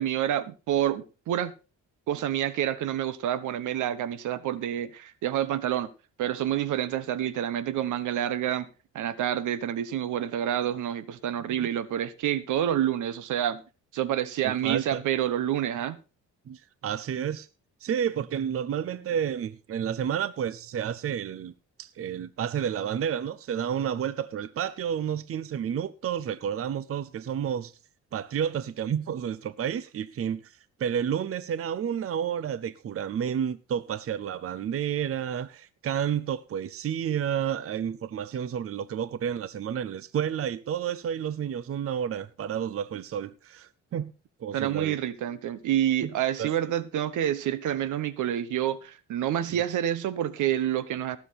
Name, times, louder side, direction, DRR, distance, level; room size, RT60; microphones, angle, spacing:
voice 1, 0.0-1.5 2.1-5.9 6.2-8.7 8.9-13.6 13.9-16.0 44.5-51.2, right 11 dB, 80° right, 1.2 m, -28 dB
voice 2, 14.4-15.0 16.5-17.5 17.8-21.5 21.8-27.7 28.1-44.1 44.4-45.0 46.0-46.1 46.4-46.5, right 8 dB, 50° right, 0.7 m, -30 dB
18.0 x 7.3 x 4.2 m
cardioid pair, 90°, 30 cm